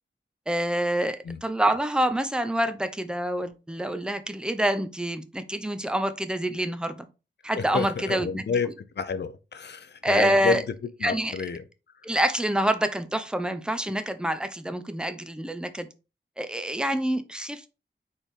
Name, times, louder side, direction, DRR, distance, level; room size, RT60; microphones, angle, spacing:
voice 1, 0.5-7.1 7.4-8.4 10.0-10.6 11.0-11.3 12.0-15.9 16.4-17.7, right 1 dB, 5° right, 0.5 m, -26 dB
voice 2, 7.5-8.7 9.0-10.6 11.0-11.6, left 5 dB, 60° left, 0.5 m, -29 dB
4.4 x 3.5 x 3.2 m
wide cardioid pair, 70°, 20 cm